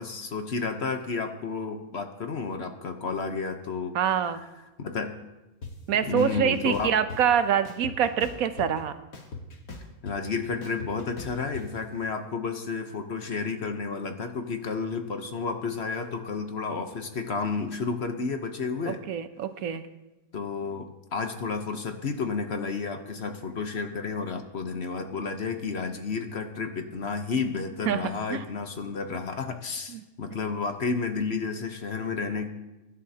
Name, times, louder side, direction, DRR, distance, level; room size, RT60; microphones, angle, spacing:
voice 1, 0.0-4.2 4.8-5.2 6.0-7.0 10.0-19.0 20.3-32.5, left 4 dB, 50° left, 6 dB, 1.1 m, -31 dB
voice 2, 3.9-4.4 5.9-8.9 18.9-19.8 27.9-28.4 29.9-30.0, right 8 dB, 70° right, 10 dB, 1.2 m, -25 dB
sound 1, 5.6-5.7 6.2-7.2 7.6-8.8 9.1-11.6, left 4 dB, 70° left, 2.0 m, -40 dB
23.0 x 11.5 x 2.8 m, 1.0 s
omnidirectional pair, 1.5 m